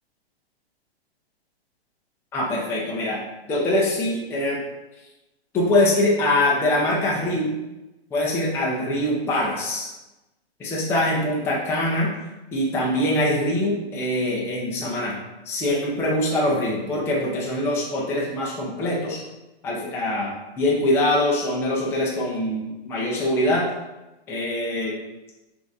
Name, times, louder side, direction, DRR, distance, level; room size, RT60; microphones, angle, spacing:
voice 1, 2.3-3.2 3.5-4.6 5.5-7.5 8.1-9.9 10.6-12.1 12.5-15.2 15.4-19.2 19.6-23.6 24.3-25.0, left 1 dB, 10° left, -5 dB, 0.5 m, -23 dB
6.2 x 2.6 x 2.6 m, 1.0 s
hypercardioid pair, 135°, 32 cm